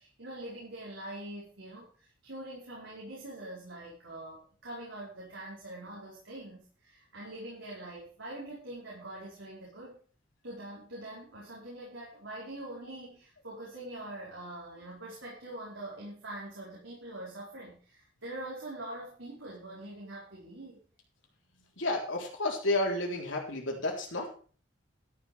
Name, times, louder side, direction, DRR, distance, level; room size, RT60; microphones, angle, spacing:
voice 1, 0.0-10.0 10.4-20.8, right 1 dB, 80° right, -4 dB, 4.7 m, -44 dB
voice 2, 21.8-24.3, left 2 dB, 80° left, 0 dB, 3.7 m, -31 dB
13.0 x 7.4 x 5.6 m, 0.41 s
head